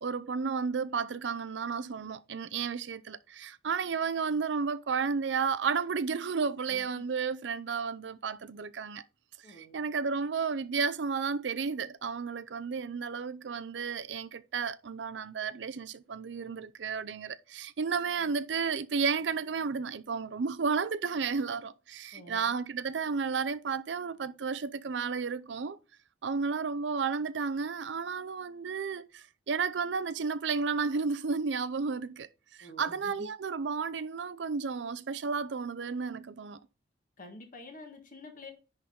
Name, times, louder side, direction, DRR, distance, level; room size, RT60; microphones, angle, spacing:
voice 1, 0.0-9.0 9.5-25.8 26.2-36.6, right 5 dB, 80° right, 0.5 m, -32 dB
voice 2, 6.6-7.0 9.4-9.8 18.2-18.3 22.1-22.5 32.6-33.3 37.2-38.5, left 1 dB, 50° left, 1.5 m, -49 dB
10.5 x 3.9 x 3.6 m
head